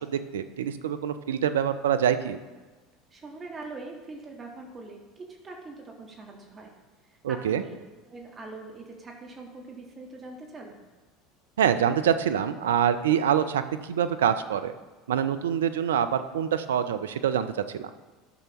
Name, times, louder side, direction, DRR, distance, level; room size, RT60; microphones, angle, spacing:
voice 1, 0.0-2.4 7.2-7.6 11.6-14.7 15.1-17.9, right 9 dB, 75° right, 10 dB, 0.5 m, -25 dB
voice 2, 3.1-6.7 7.1-7.7 8.1-10.8, right 3 dB, 30° right, 1 dB, 1.5 m, -43 dB
12.0 x 6.7 x 3.0 m, 1.3 s
figure-of-eight pair, 70°, 0 cm